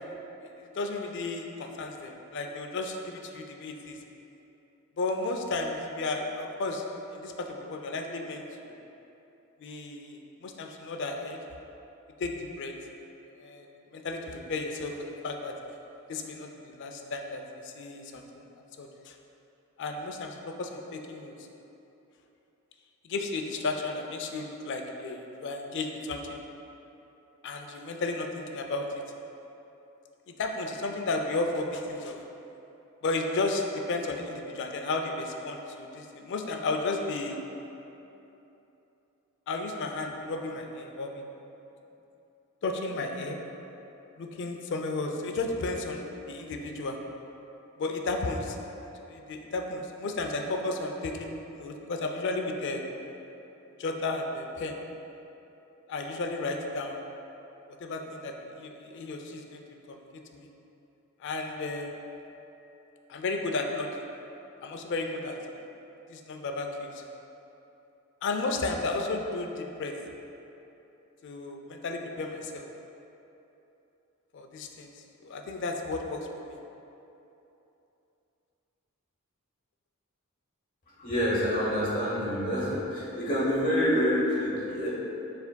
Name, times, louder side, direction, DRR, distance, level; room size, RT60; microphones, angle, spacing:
voice 1, 0.0-4.0 5.0-8.7 9.6-11.4 12.2-12.7 13.3-13.7 13.9-15.5 16.1-18.4 18.8-19.2 19.8-21.5 23.0-26.4 27.4-29.0 30.3-32.2 33.0-37.4 39.5-41.2 42.6-43.4 44.2-47.0 47.8-48.6 49.1-52.9 53.8-54.8 55.9-57.0 57.8-60.5 61.2-62.0 63.1-64.0 64.6-65.4 66.1-67.0 68.2-69.9 71.2-72.7 74.3-76.6, left 3 dB, 55° left, 3 dB, 0.4 m, -33 dB
voice 2, 81.0-84.9, equal, 40° left, -7 dB, 1.0 m, -27 dB
6.9 x 3.4 x 2.2 m, 3.0 s
head